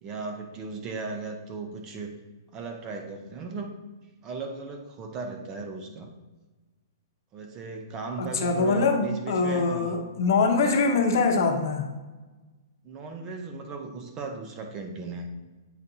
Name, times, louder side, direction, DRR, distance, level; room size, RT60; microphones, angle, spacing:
voice 1, 0.0-2.1 2.5-3.8 4.2-6.1 7.3-10.0 12.8-15.3, right 4 dB, 25° right, 4 dB, 0.6 m, -37 dB
voice 2, 8.2-11.9, left 4 dB, 60° left, 4 dB, 0.8 m, -23 dB
8.5 x 4.0 x 2.7 m, 1.2 s
hypercardioid pair, 160°, 2 cm